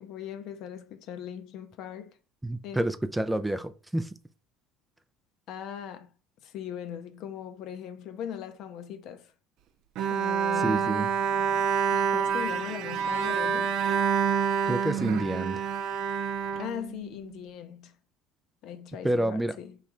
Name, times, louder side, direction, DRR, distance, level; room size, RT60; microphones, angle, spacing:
voice 1, 0.0-2.2 2.6-2.9 5.5-6.1 6.4-9.3 10.1-10.9 11.9-13.8 16.6-17.9 18.6-19.8, left 9 dB, 60° left, 0.6 m, -39 dB
voice 2, 2.4-4.1 10.6-11.1 14.7-15.7 19.0-19.6, right 1 dB, 5° right, 0.3 m, -28 dB
Bowed string instrument, 10.0-17.3, right 7 dB, 60° right, 0.5 m, -27 dB
4.2 x 3.1 x 3.6 m
supercardioid pair, 100°, 0 cm